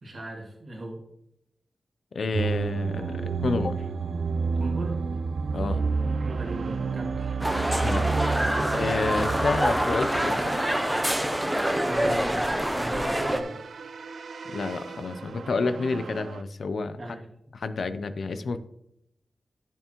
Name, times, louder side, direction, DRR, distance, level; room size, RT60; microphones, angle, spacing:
voice 1, 0.0-1.0 4.5-5.2 5.7-5.9 6.2-7.4 8.6-8.8 11.8-13.6 17.0-17.3, right 1 dB, 45° right, 0 dB, 2.0 m, -38 dB
voice 2, 2.1-3.8 5.5-5.8 7.7-8.4 8.7-10.6 14.5-17.0 17.5-18.6, left 3 dB, 65° left, 11 dB, 0.5 m, -29 dB
sound 1, 2.3-16.4, right 4 dB, 70° right, 0.3 m, -31 dB
sound 2, 7.4-13.4, equal, 5° right, 0.6 m, -26 dB
10.5 x 7.1 x 3.0 m, 0.77 s
wide cardioid pair, 155°, 0 cm